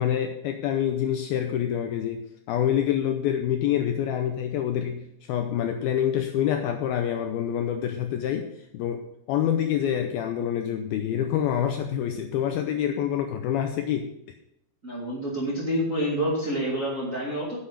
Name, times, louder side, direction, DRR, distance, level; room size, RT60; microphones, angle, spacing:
voice 1, 0.0-14.1, left 10 dB, 85° left, 5 dB, 2.2 m, -27 dB
voice 2, 14.8-17.6, equal, 30° right, -4 dB, 1.7 m, -28 dB
9.5 x 8.7 x 5.5 m, 0.79 s
omnidirectional pair, 5.0 m